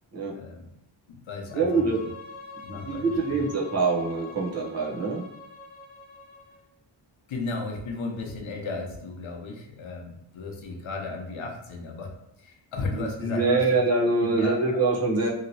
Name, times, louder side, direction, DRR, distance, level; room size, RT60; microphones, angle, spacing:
voice 1, 0.3-0.7 1.1-1.9 2.6-3.4 7.3-12.1 12.4-13.6 14.2-14.8, left 3 dB, 80° left, 2 dB, 0.7 m, -35 dB
Bowed string instrument, 1.5-6.6, left 3 dB, 20° left, 0.6 m, -45 dB
voice 2, 1.5-2.0 2.8-5.2 12.9-15.3, right 3 dB, 35° right, -4 dB, 0.7 m, -24 dB
2.8 x 2.8 x 2.7 m, 0.83 s
wide cardioid pair, 130°, 47 cm